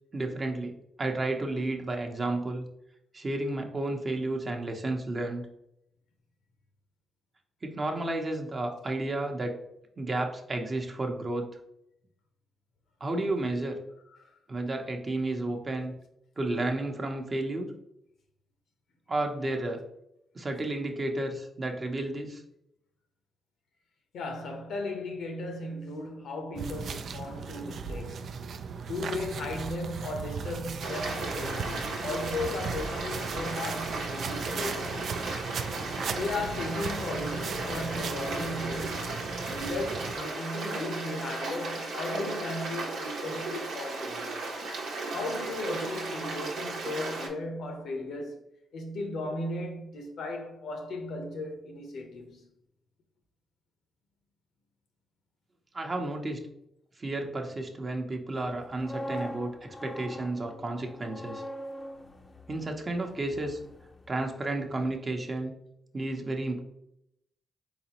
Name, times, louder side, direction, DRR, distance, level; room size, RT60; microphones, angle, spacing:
voice 1, 0.1-2.6 3.1-5.5 7.6-9.6 10.0-11.5 13.0-13.8 14.5-15.9 16.4-17.7 19.1-19.8 20.3-22.4 55.7-56.4 57.0-61.4 62.5-63.6 64.1-65.5 65.9-66.6, right 2 dB, 35° right, 0.8 m, -32 dB
voice 2, 24.1-28.4 28.9-35.1 36.1-39.1 39.5-44.4 45.1-48.4 48.7-52.5, left 2 dB, 75° left, 0.8 m, -36 dB
sound 1, 26.5-40.1, right 5 dB, 65° right, 0.3 m, -37 dB
Stream, 30.8-47.3, right 3 dB, 85° right, 1.0 m, -35 dB
sound 2, 58.5-64.5 64.8-65.0, left 1 dB, 25° left, 0.6 m, -42 dB
3.9 x 3.9 x 3.0 m
cardioid pair, 65°, 0 cm